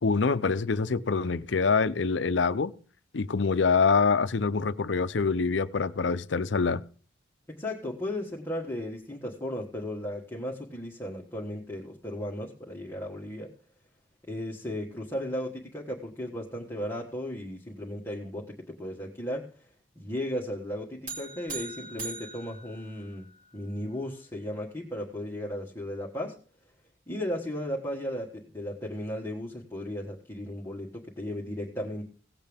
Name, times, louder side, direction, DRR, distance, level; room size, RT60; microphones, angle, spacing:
voice 1, 0.0-2.7 3.1-6.8, left 4 dB, 65° left, 0.6 m, -25 dB
voice 2, 7.5-13.5 14.3-19.7 19.9-23.3 23.5-26.4 27.1-32.1, left 1 dB, 15° left, 1.5 m, -35 dB
sound 1, 21.1-23.5, right 3 dB, 45° right, 3.1 m, -41 dB
17.5 x 8.0 x 3.5 m
head